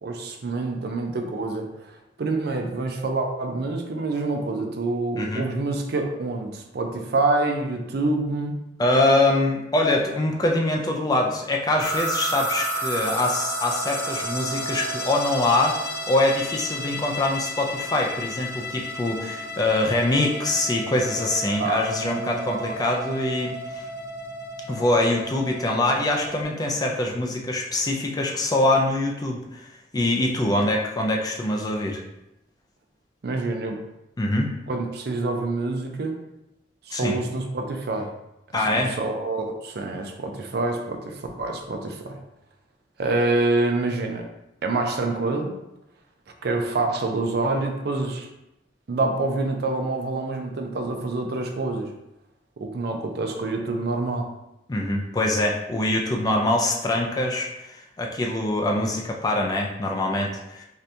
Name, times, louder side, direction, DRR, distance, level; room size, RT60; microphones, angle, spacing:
voice 1, 0.0-8.7 21.6-22.6 33.2-33.8 34.7-36.2 36.9-38.1 38.5-42.2 43.0-44.3 44.6-45.6 46.4-48.3 48.9-51.9 52.6-54.3, right 2 dB, 60° right, 4 dB, 0.4 m, -27 dB
voice 2, 5.2-5.5 8.8-23.8 24.7-32.0 34.2-34.5 36.9-37.2 38.5-39.0 54.7-60.6, left 2 dB, 20° left, 1 dB, 0.3 m, -24 dB
sound 1, 11.8-26.4, right 1 dB, 70° left, 0.9 m, -32 dB
2.7 x 2.6 x 3.3 m, 0.89 s
head